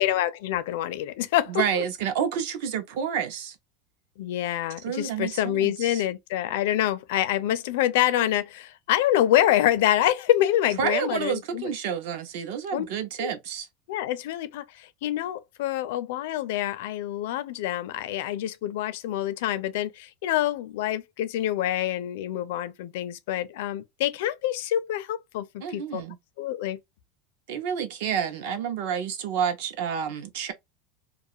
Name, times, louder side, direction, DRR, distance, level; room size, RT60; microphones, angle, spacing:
voice 1, 0.0-1.6 4.2-11.7 12.7-12.8 13.2-13.3 13.9-26.0 26.4-26.8, left 12 dB, 65° left, 0.4 m, -26 dB
voice 2, 1.5-3.6 4.8-6.0 10.8-13.7 25.6-26.2 27.5-30.5, right 8 dB, 60° right, 0.7 m, -29 dB
2.4 x 2.3 x 2.7 m
supercardioid pair, 175°, 0 cm